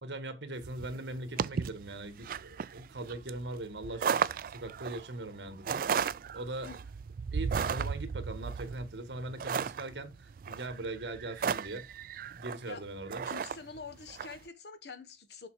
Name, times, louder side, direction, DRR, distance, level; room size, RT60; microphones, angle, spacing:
voice 1, 0.0-5.8 6.3-6.7 7.3-11.9 12.3-13.3, right 2 dB, 70° right, 1.5 m, -40 dB
sound 1, 0.6-14.4, right 6 dB, 50° right, 0.3 m, -35 dB
voice 2, 13.2-15.5, left 4 dB, 65° left, 1.2 m, -46 dB
6.9 x 5.0 x 4.8 m
head